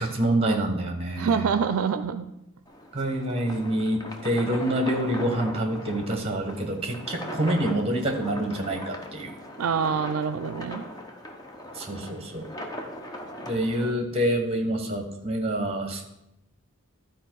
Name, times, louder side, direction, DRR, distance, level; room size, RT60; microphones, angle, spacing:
voice 1, 0.0-1.5 2.9-9.3 11.7-12.5 13.4-16.0, right 1 dB, 25° right, 5 dB, 1.2 m, -27 dB
voice 2, 1.2-2.3 9.6-10.8, right 6 dB, 80° right, 11 dB, 0.4 m, -26 dB
sound 1, 2.7-13.9, equal, 15° left, 0.8 m, -39 dB
12.0 x 4.6 x 4.6 m, 0.86 s
head